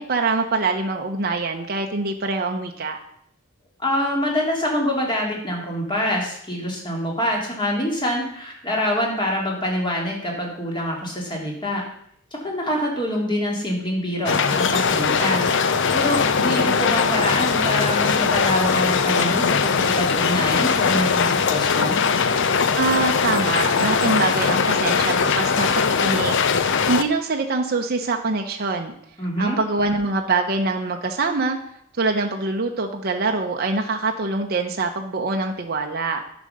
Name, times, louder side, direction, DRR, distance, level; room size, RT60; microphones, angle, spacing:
voice 1, 0.0-3.0 22.8-26.4 26.8-28.9 29.4-31.6 32.0-36.2, right 3 dB, 45° right, 3 dB, 0.7 m, -24 dB
voice 2, 3.8-11.8 12.3-15.5 15.9-22.0 29.2-29.6, equal, 20° left, -1 dB, 2.3 m, -25 dB
sound 1, 14.3-27.0, left 5 dB, 55° left, 0.6 m, -20 dB
10.0 x 5.2 x 6.5 m, 0.70 s
head